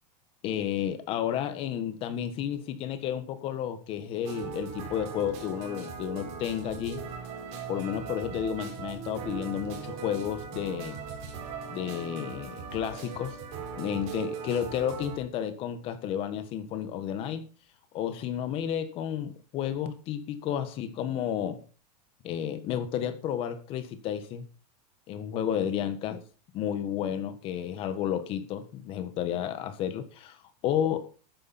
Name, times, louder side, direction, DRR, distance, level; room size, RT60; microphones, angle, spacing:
voice 1, 0.4-7.0 7.7-11.0 11.7-13.4 13.8-17.4 17.9-21.6 22.2-24.4 25.1-26.2 26.5-30.4 30.6-31.1, left 9 dB, 25° left, 1.4 m, -32 dB
sound 1, 4.2-15.2, right 6 dB, 30° right, 4.2 m, -39 dB
13.0 x 9.8 x 4.3 m
supercardioid pair, 175°, 21 cm